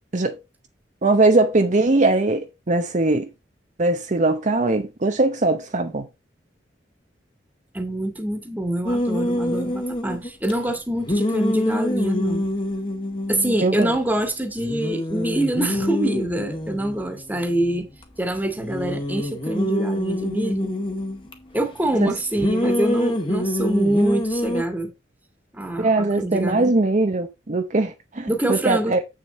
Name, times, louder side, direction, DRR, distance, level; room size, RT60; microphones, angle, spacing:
voice 1, 1.0-3.3 3.8-6.1 13.6-13.9 22.0-22.1 25.8-29.0, right 2 dB, 45° right, 0.8 m, -20 dB
voice 2, 7.7-12.5 13.3-17.9 18.2-20.7 21.5-24.9 25.5-26.7 28.3-29.0, right 1 dB, 10° right, 1.7 m, -25 dB
sound 1, 8.8-10.5 11.0-14.0 14.2-14.3 14.6-18.0 18.6-21.3 22.3-24.6, left 1 dB, 30° left, 1.8 m, -26 dB
8.1 x 6.6 x 4.3 m
head